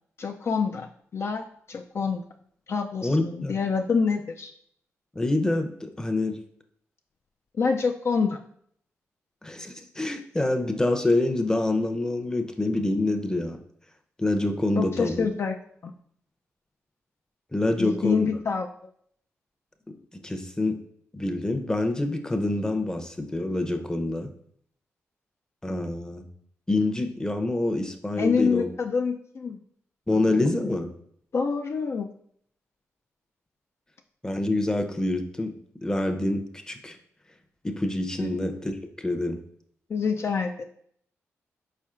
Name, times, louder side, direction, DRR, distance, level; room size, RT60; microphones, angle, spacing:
voice 1, 0.2-0.9 1.1-2.2 2.7-4.5 7.6-8.4 14.8-15.5 15.8-15.9 17.8-18.7 28.2-29.6 30.1-30.5 31.3-32.1 38.2-38.3 39.9-40.6, left 5 dB, 50° left, 3 dB, 0.3 m, -26 dB
voice 2, 3.0-3.6 5.1-6.4 9.4-13.6 14.2-15.3 17.5-18.3 20.1-20.8 21.1-24.3 25.6-26.3 26.7-28.7 30.1-30.9 34.2-35.5 35.8-37.0 37.6-39.4, left 2 dB, 10° left, 5 dB, 0.6 m, -26 dB
4.3 x 4.3 x 2.4 m, 0.64 s
supercardioid pair, 55°, 6 cm